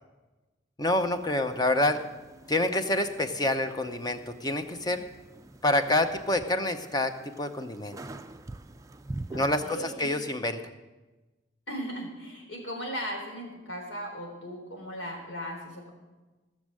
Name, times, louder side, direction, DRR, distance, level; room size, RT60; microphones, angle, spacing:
voice 1, 0.8-2.0 2.5-5.0 5.6-8.0 9.3-10.6, left 1 dB, 20° left, 8 dB, 0.7 m, -27 dB
Wooden creak, 0.8-9.8, right 2 dB, 15° right, 0.4 m, -46 dB
voice 2, 9.3-10.1 11.7-15.9, equal, 75° left, 1 dB, 3.7 m, -37 dB
17.0 x 6.4 x 7.6 m, 1.2 s
head